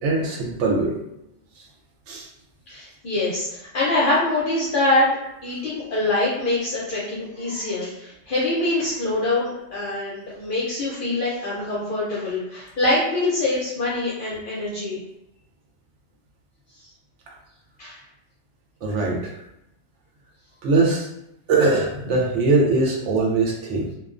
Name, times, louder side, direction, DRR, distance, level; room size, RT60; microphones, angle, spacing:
voice 1, 0.0-1.0 2.1-2.3 18.8-19.3 20.6-21.1 21.5-23.9, right 3 dB, 90° right, -1 dB, 0.9 m, -21 dB
voice 2, 2.7-5.1 5.4-15.0 17.8-18.0, left 2 dB, 55° left, -6 dB, 0.7 m, -24 dB
2.3 x 2.3 x 2.4 m, 0.85 s
omnidirectional pair, 1.2 m